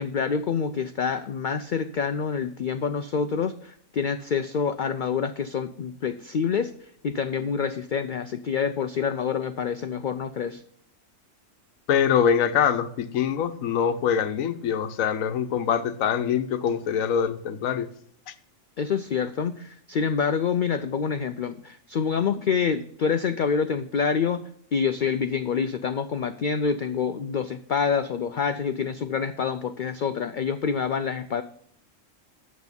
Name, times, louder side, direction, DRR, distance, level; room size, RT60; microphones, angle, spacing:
voice 1, 0.0-10.6 18.8-31.4, left 6 dB, 70° left, 0.4 m, -27 dB
voice 2, 11.9-17.9 18.3-18.4, left 8 dB, 85° left, 1.2 m, -24 dB
8.3 x 7.4 x 5.1 m
omnidirectional pair, 1.4 m